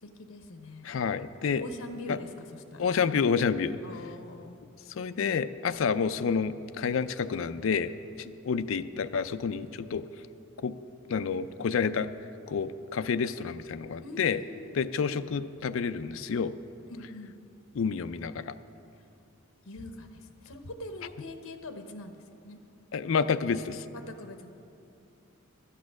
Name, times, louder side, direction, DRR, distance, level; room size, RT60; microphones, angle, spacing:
voice 1, 0.0-0.9 1.6-2.9 3.8-4.6 14.0-14.9 16.9-17.3 19.7-22.6 23.9-24.5, left 2 dB, 85° left, 7 dB, 0.8 m, -43 dB
voice 2, 0.8-1.6 2.1-2.2 2.8-3.8 5.0-10.0 10.6-10.8 11.1-12.1 12.5-14.4 14.7-16.5 17.7-18.5 22.9-23.8, left 6 dB, 65° left, 12 dB, 0.4 m, -29 dB
12.5 x 8.4 x 6.2 m, 2.8 s
head